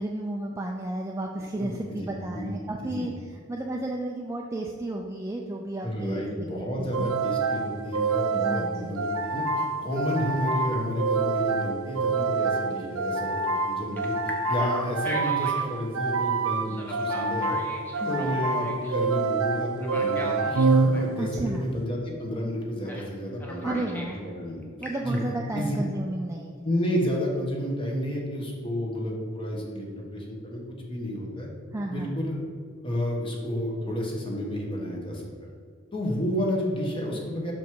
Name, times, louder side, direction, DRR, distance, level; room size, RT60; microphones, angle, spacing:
voice 1, 0.0-3.1 3.5-7.1 8.3-8.9 18.0-18.3 21.1-21.7 23.6-24.2 24.8-26.6 31.7-32.2, right 1 dB, 15° right, 0 dB, 0.3 m, -32 dB
voice 2, 1.5-2.1 2.3-2.5 2.8-3.1 5.8-17.6 18.0-23.9 24.1-24.6 25.0-25.2 25.5-25.9 26.6-30.6 30.9-31.5 31.9-32.4 32.8-35.3 35.9-37.5, equal, 25° left, -1 dB, 1.2 m, -31 dB
sound 1, 6.9-21.5, right 4 dB, 85° right, 0.5 m, -27 dB
Telephone, 11.2-13.4 14.0-15.7 16.7-18.9 19.8-21.1 22.9-23.1 23.4-24.2 24.6-25.2, equal, 10° left, 0.8 m, -39 dB
6.0 x 5.1 x 4.6 m, 2.2 s
head